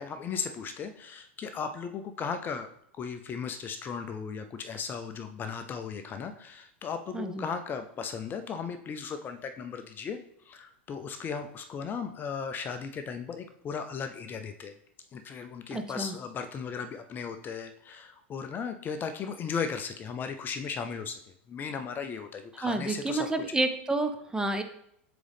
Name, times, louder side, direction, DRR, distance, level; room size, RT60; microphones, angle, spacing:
voice 1, 0.0-2.7 3.0-10.2 10.4-14.7 15.1-21.2 21.5-23.3, left 6 dB, 30° left, 8 dB, 0.5 m, -36 dB
voice 2, 7.1-7.5 15.7-16.2 22.6-24.6, right 2 dB, 10° right, 7 dB, 0.6 m, -29 dB
7.9 x 3.7 x 3.5 m, 0.71 s
hypercardioid pair, 110°, 7 cm